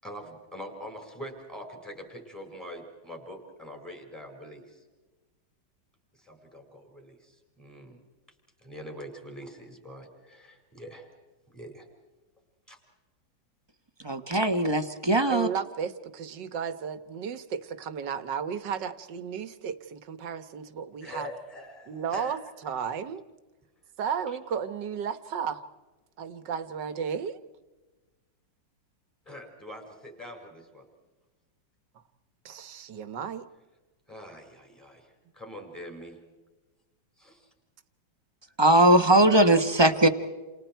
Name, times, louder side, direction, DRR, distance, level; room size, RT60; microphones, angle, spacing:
voice 1, 0.0-4.8 6.1-8.0 8.6-11.1 11.5-11.9 12.7-12.8 21.0-22.4 29.2-30.9 34.1-36.2 37.2-37.5, equal, ahead, 2 dB, 5.2 m, -44 dB
voice 2, 14.0-15.5 38.6-40.1, right 1 dB, 20° right, 8 dB, 0.8 m, -20 dB
voice 3, 15.3-21.3 21.9-22.4 22.6-23.2 24.0-25.6 26.2-27.4 32.4-33.5, right 7 dB, 70° right, 12 dB, 1.7 m, -34 dB
29.5 x 28.5 x 4.5 m, 1.2 s
omnidirectional pair, 2.0 m